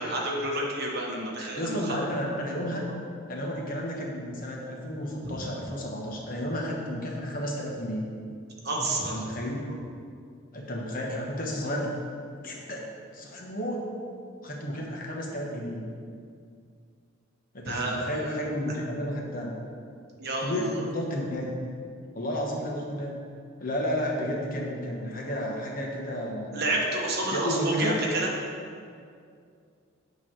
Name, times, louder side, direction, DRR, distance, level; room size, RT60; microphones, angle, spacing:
voice 1, 0.0-2.0 5.2-5.4 8.6-9.2 17.7-18.3 20.2-20.8 26.5-28.3, right 2 dB, 50° right, -2 dB, 1.1 m, -29 dB
voice 2, 1.6-2.9 3.3-8.0 9.1-9.7 10.5-11.9 12.4-12.8 13.1-13.9 14.4-15.8 17.5-19.5 20.4-21.5 22.1-23.1 23.6-26.7 27.3-28.1, equal, 40° left, -1 dB, 1.0 m, -32 dB
8.8 x 3.2 x 6.1 m, 2.3 s
head